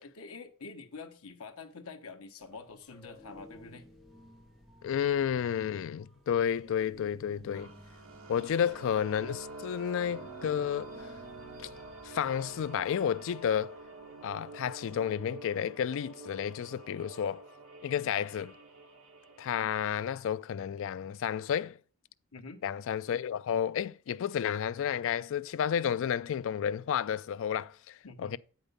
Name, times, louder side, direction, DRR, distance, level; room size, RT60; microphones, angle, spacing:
voice 1, 0.0-3.9 8.4-8.5 17.9-18.2 22.3-22.6 28.0-28.4, left 4 dB, 75° left, 1.1 m, -47 dB
sound 1, 2.4-15.2, equal, ahead, 1.2 m, -56 dB
voice 2, 4.8-7.7 8.3-10.9 11.6-11.7 12.0-13.7 14.2-17.4 17.8-18.5 19.4-21.8 22.6-28.4, left 8 dB, 60° left, 0.3 m, -31 dB
sound 2, 7.5-19.5, right 2 dB, 65° right, 1.8 m, -47 dB
8.0 x 5.3 x 5.3 m
head